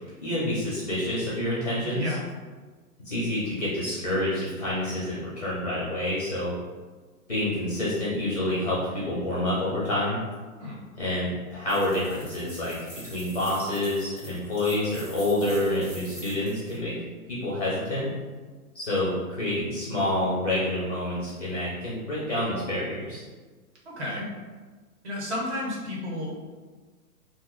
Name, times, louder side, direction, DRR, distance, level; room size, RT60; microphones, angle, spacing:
voice 1, 0.2-2.1 3.0-6.5 7.3-10.2 11.0-16.9 17.3-18.1 18.7-23.2, left 1 dB, 30° left, -7 dB, 0.5 m, -28 dB
voice 2, 1.8-2.2 10.6-10.8 23.8-24.3 25.0-26.3, left 1 dB, 45° right, -4 dB, 1.1 m, -32 dB
sound 1, 11.7-16.8, equal, 20° right, 0.6 m, -45 dB
2.6 x 2.2 x 3.7 m, 1.4 s
hypercardioid pair, 165°, 45 cm